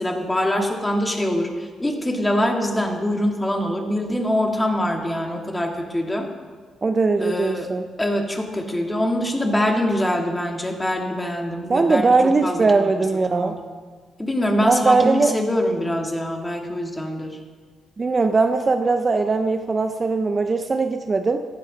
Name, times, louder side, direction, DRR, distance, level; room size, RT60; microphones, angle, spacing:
voice 1, 0.0-6.3 7.2-7.7 8.0-12.2 12.4-12.9 13.3-13.6 14.2-17.4, left 1 dB, 15° left, 1 dB, 2.4 m, -24 dB
voice 2, 6.8-7.8 11.7-13.5 14.6-15.3 18.0-21.4, right 3 dB, 30° right, 6 dB, 0.7 m, -20 dB
15.5 x 11.5 x 5.4 m, 1.5 s
cardioid pair, 90°, 0 cm